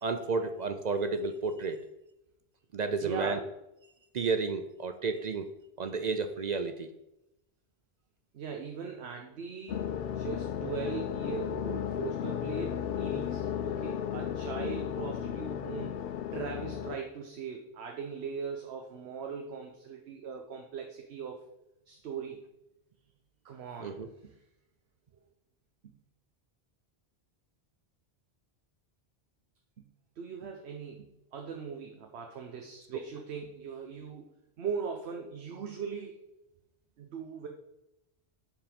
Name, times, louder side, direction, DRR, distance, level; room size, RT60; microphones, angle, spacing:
voice 1, 0.0-1.8 2.7-3.4 4.1-5.5 5.8-6.9 23.8-24.1 32.9-33.0, right 4 dB, 55° right, 9 dB, 0.5 m, -32 dB
voice 2, 3.0-3.4 8.3-16.0 16.3-21.4 21.9-22.5 23.4-24.0 29.8-29.9 30.2-34.3 34.6-36.2 37.0-37.5, right 6 dB, 75° right, 3 dB, 1.1 m, -40 dB
sound 1, 9.7-17.0, left 9 dB, 65° left, 0.7 m, -34 dB
7.4 x 5.3 x 5.2 m, 0.89 s
omnidirectional pair, 1.1 m